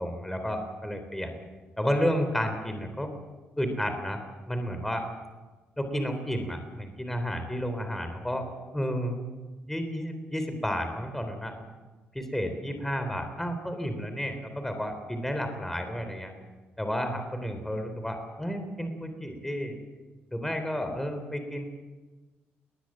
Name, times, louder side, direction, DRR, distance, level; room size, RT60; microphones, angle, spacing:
voice 1, 0.0-1.3 1.8-3.1 3.6-4.2 4.5-5.0 5.8-8.5 8.7-9.3 9.7-11.5 12.1-16.3 16.8-19.7 20.3-21.7, equal, 5° left, 7 dB, 3.7 m, -31 dB
21.0 x 19.5 x 7.5 m, 1.2 s
cardioid pair, 95°, 4 cm